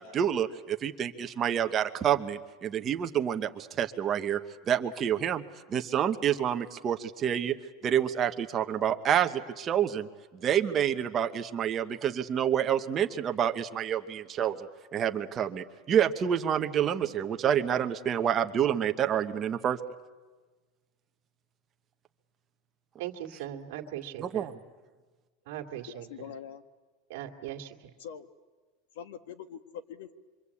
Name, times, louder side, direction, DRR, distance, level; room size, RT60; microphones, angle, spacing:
voice 1, 0.0-4.4 4.7-5.4 5.7-7.5 7.8-10.1 10.4-19.8 24.2-24.5, right 9 dB, 20° right, 6 dB, 1.0 m, -28 dB
voice 2, 23.0-24.5 25.5-26.1 27.1-27.9, right 12 dB, 60° right, 4 dB, 2.3 m, -39 dB
voice 3, 25.9-26.6 28.0-28.3 28.9-30.1, left 8 dB, 75° left, 11 dB, 1.6 m, -43 dB
26.0 x 25.0 x 8.5 m, 1.3 s
supercardioid pair, 170°, 0 cm